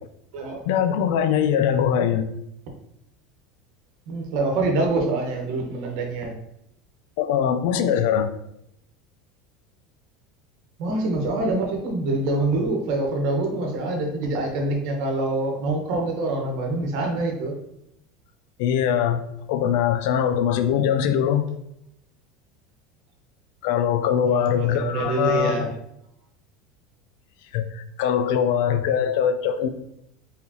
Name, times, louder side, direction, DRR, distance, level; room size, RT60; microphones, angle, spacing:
voice 1, 0.7-2.3 7.2-8.4 18.6-19.2 19.5-21.4 23.6-25.7 27.5-29.7, left 8 dB, 70° left, 10 dB, 0.5 m, -22 dB
voice 2, 4.1-6.3 10.8-17.5 24.2-25.7, right 2 dB, 65° right, 2 dB, 1.1 m, -25 dB
4.4 x 3.5 x 2.9 m, 0.79 s
supercardioid pair, 135°, 0 cm